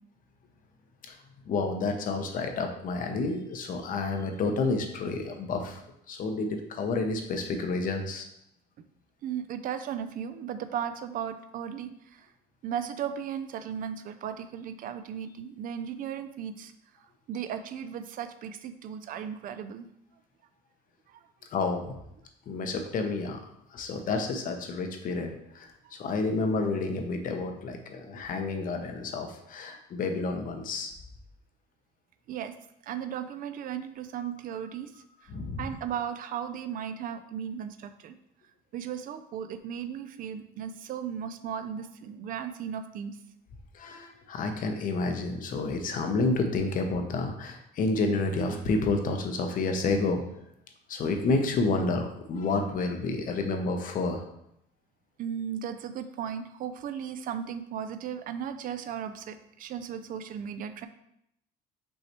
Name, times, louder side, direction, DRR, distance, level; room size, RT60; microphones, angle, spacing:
voice 1, 1.5-5.8 6.1-8.3 21.5-22.0 22.5-23.4 23.7-25.7 26.0-30.9 35.3-35.7 43.7-50.2 50.9-54.2, left 3 dB, 55° left, 5 dB, 0.8 m, -29 dB
voice 2, 9.2-12.3 12.6-16.7 17.3-19.9 21.1-21.2 32.3-32.5 32.8-34.9 35.6-38.1 38.7-43.2 55.2-60.9, right 8 dB, 55° right, 10 dB, 0.4 m, -36 dB
5.3 x 3.2 x 3.0 m, 0.77 s
cardioid pair, 110°, 17 cm